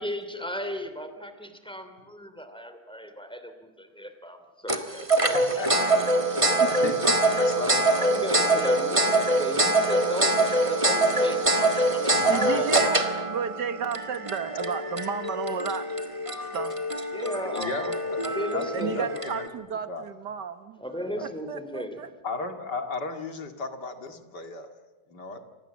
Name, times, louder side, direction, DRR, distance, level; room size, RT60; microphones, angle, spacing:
voice 1, 0.0-5.1 5.6-5.7 6.0-6.1 7.9-13.2 17.1-19.1 20.8-22.1, equal, 5° left, 8 dB, 2.8 m, -36 dB
sound 1, 4.7-19.5, right 2 dB, 20° right, 1.7 m, -24 dB
voice 2, 5.3-5.9 6.5-7.9 8.4-9.1 12.1-12.9 17.5-18.7 18.9-19.4 19.9-20.0 21.0-21.2 22.2-24.7 25.1-25.4, left 3 dB, 75° left, 6 dB, 2.8 m, -35 dB
voice 3, 6.4-7.2 12.3-15.9 16.4-16.7 18.7-20.8 21.2-22.1, right 7 dB, 80° right, 10 dB, 2.1 m, -33 dB
29.5 x 25.0 x 7.5 m, 1.3 s
omnidirectional pair, 1.8 m